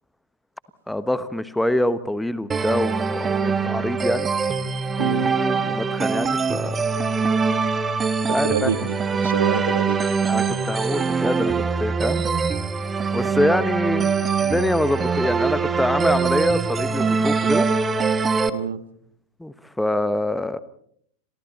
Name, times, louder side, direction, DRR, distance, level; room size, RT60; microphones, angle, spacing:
voice 1, 0.9-3.3 3.6-4.3 5.6-6.8 8.3-8.9 10.3-12.2 13.1-14.1 14.4-17.7 19.4-20.6, left 1 dB, 5° left, 14 dB, 1.2 m, -25 dB
sound 1, 2.5-18.5, right 5 dB, 15° right, 1.4 m, -23 dB
voice 2, 5.0-5.3 8.3-9.0 9.2-10.0 18.5-18.8, right 8 dB, 65° right, 12 dB, 1.6 m, -26 dB
29.5 x 23.0 x 4.1 m, 0.64 s
figure-of-eight pair, 90°, 0 cm